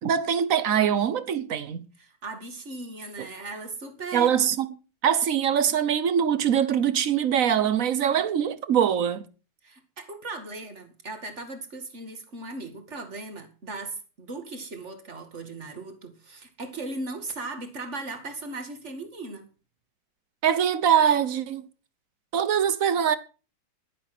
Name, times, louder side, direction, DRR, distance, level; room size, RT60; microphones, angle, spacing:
voice 1, 0.0-1.9 4.1-4.7 5.0-9.3 20.4-21.6 22.3-23.2, right 8 dB, 50° right, 1.1 m, -23 dB
voice 2, 2.0-4.4 9.6-19.5, right 2 dB, 35° right, 2.4 m, -38 dB
11.5 x 10.5 x 6.0 m
omnidirectional pair, 2.3 m